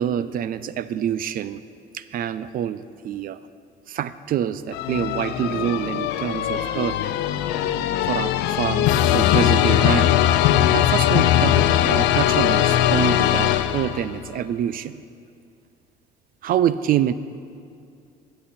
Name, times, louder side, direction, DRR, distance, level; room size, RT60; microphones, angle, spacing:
voice 1, 0.0-1.6 1.9-3.4 3.9-7.0 8.0-10.2 10.7-15.0 16.4-17.1, right 10 dB, 60° right, 15 dB, 0.5 m, -26 dB
sound 1, 4.7-14.2, left 11 dB, 90° left, 0.5 m, -20 dB
16.5 x 7.8 x 4.2 m, 2.5 s
cardioid pair, 110°, 17 cm